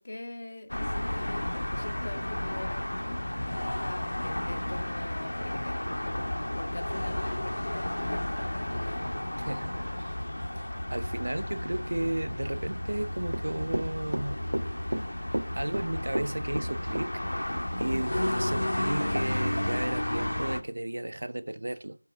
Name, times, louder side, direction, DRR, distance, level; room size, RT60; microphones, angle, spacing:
voice 1, 0.0-3.2 3.8-7.9 8.5-9.1, left 2 dB, 35° left, 2.1 m, -43 dB
sound 1, 0.7-20.6, left 1 dB, 85° left, 2.3 m, -32 dB
voice 2, 9.4-10.2 10.6-14.4 15.5-22.0, right 1 dB, 60° right, 1.2 m, -34 dB
Run / Walk footsteps, 13.3-18.3 18.6-18.7, right 1 dB, 85° right, 1.8 m, -33 dB
18.5 x 8.2 x 5.8 m
figure-of-eight pair, 175°, 0 cm